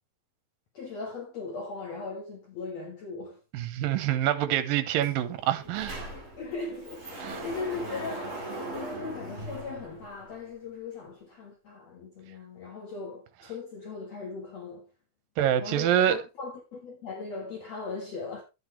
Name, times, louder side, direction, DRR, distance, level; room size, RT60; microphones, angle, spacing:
voice 1, 0.7-3.4 6.4-14.9 15.6-18.4, left 4 dB, 55° left, 2.4 m, -38 dB
voice 2, 3.5-6.0 7.2-7.4 15.4-16.2, right 11 dB, 80° right, 2.6 m, -26 dB
Sliding door, 5.0-5.1 5.4-10.4, right 1 dB, 20° right, 4.3 m, -39 dB
12.5 x 8.8 x 3.2 m
omnidirectional pair, 4.1 m